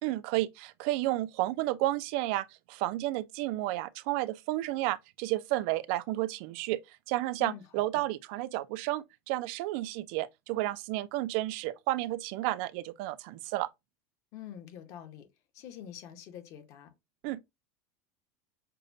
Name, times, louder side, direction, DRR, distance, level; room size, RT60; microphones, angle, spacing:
voice 1, 0.0-6.8 7.1-13.7 17.2-17.4, right 16 dB, 55° right, 0.4 m, -32 dB
voice 2, 7.4-8.0 14.3-15.3 15.5-16.9, left 10 dB, 40° left, 0.9 m, -46 dB
6.5 x 2.2 x 2.6 m
supercardioid pair, 170°, 8 cm